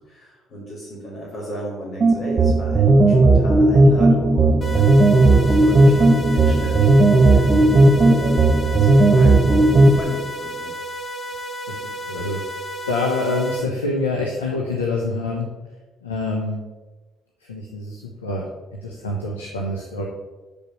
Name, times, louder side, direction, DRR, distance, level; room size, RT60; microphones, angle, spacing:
voice 1, 0.0-8.4 8.7-10.7, equal, 60° left, -7 dB, 2.9 m, -34 dB
sound 1, 2.0-10.0, right 2 dB, 40° right, 1.0 m, -14 dB
sound 2, 4.6-13.6, equal, 40° left, 1.4 m, -32 dB
voice 2, 11.7-12.4 12.9-15.5 16.0-16.6 17.4-18.4 18.8-20.0, left 2 dB, 90° left, -1 dB, 0.9 m, -26 dB
6.7 x 5.2 x 6.4 m, 1.2 s
hypercardioid pair, 50°, 0 cm